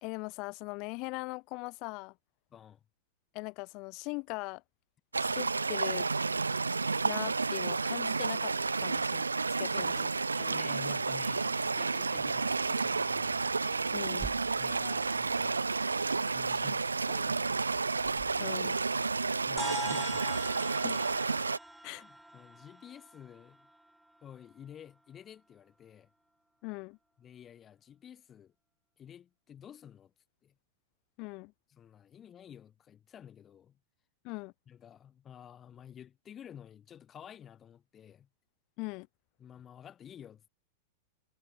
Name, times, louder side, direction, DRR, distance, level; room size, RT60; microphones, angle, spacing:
voice 1, 0.0-2.1 3.3-4.6 5.2-6.1 7.0-8.5 8.8-9.3 9.6-9.9 13.9-14.3 18.4-18.8 20.8-21.3 21.8-22.0 26.6-27.0 31.2-31.5 34.2-34.5 38.8-39.1, left 28 dB, 45° left, 0.5 m, -40 dB
voice 2, 2.5-2.8 9.7-9.9 10.4-13.4 14.6-15.7 16.3-17.6 19.5-21.0 22.0-23.7 24.2-26.1 27.2-28.5 29.0-30.1 30.4-30.5 31.7-33.8 34.7-38.3 39.4-40.5, left 9 dB, 25° left, 3.1 m, -51 dB
sound 1, 5.1-21.6, right 4 dB, 80° right, 0.7 m, -31 dB
sound 2, 19.6-24.2, right 1 dB, 5° right, 2.6 m, -43 dB
sound 3, 21.6-22.2, right 7 dB, 20° right, 2.0 m, -53 dB
figure-of-eight pair, 95°, 0 cm